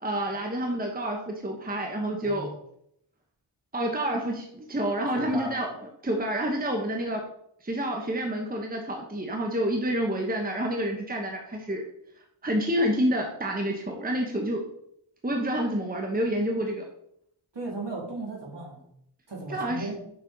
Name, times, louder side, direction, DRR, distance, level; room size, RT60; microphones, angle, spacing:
voice 1, 0.0-2.5 3.7-5.7 6.0-7.2 7.6-11.8 12.4-14.6 15.2-16.9 19.5-19.9, right 1 dB, 20° right, 1 dB, 1.0 m, -28 dB
voice 2, 5.1-5.5 17.5-18.8 19.3-20.0, right 2 dB, 55° right, -2 dB, 2.8 m, -35 dB
6.9 x 5.6 x 4.0 m, 0.73 s
wide cardioid pair, 70°, 50 cm